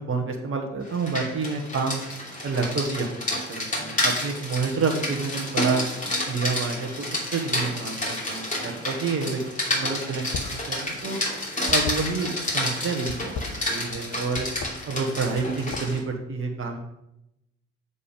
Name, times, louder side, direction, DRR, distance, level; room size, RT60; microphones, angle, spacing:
voice 1, 0.0-2.0 2.4-5.8 6.3-9.4 9.7-11.2 11.7-14.5 14.9-16.8, right 4 dB, 35° right, 2 dB, 1.5 m, -29 dB
Rain, 0.9-16.0, left 1 dB, 20° left, 2.9 m, -30 dB
sound 1, 10.3-10.6 10.9-12.5 13.0-14.0 14.3-14.7 15.2-16.1, left 4 dB, 40° left, 1.0 m, -35 dB
7.0 x 5.6 x 5.2 m, 0.82 s
figure-of-eight pair, 50°, 35 cm